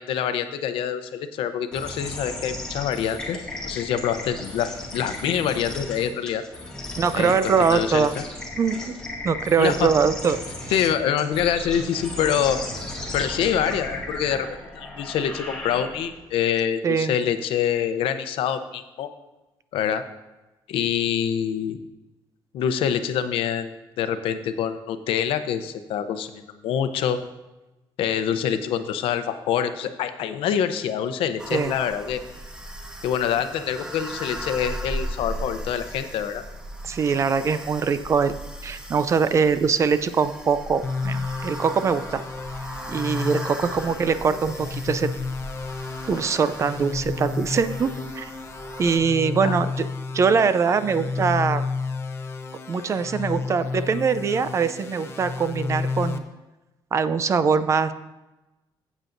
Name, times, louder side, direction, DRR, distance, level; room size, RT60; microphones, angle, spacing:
voice 1, 0.0-3.4 3.7-6.4 7.1-8.2 9.6-9.9 10.7-12.6 13.1-14.5 14.7-19.1 19.7-20.0 20.7-21.8 22.5-23.7 24.0-27.2 28.0-32.2 33.0-36.4 49.4-49.5, left 9 dB, 90° left, 10 dB, 0.7 m, -25 dB
sound 1, 1.7-16.3, left 1 dB, 10° left, 2.1 m, -35 dB
voice 2, 7.0-8.1 8.6-9.0 9.2-10.4 16.8-17.1 31.5-31.7 36.8-38.4 38.6-42.2 42.9-45.1 46.1-48.3 48.8-49.9 50.1-51.6 52.7-56.2 56.9-57.9, right 5 dB, 35° right, 13 dB, 0.4 m, -22 dB
sound 2, 31.4-49.0, right 1 dB, 10° right, 0.9 m, -37 dB
sound 3, 40.8-56.2, left 4 dB, 25° left, 0.6 m, -31 dB
15.0 x 8.2 x 2.6 m, 1.0 s
cardioid pair, 155°, 9 cm